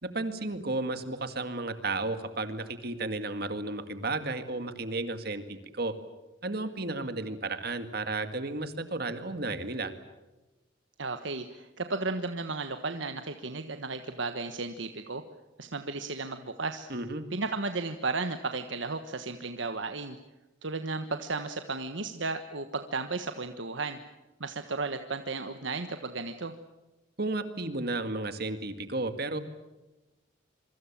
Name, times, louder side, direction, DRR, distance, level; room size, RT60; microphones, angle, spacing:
voice 1, 0.0-6.0 6.4-9.9 16.9-17.2 27.2-29.4, right 2 dB, 50° right, 9 dB, 1.9 m, -33 dB
voice 2, 11.0-15.2 15.6-16.9 17.3-20.2 20.6-24.0 24.4-26.5, right 3 dB, 75° right, 8 dB, 1.3 m, -34 dB
26.5 x 24.0 x 7.4 m, 1.0 s
head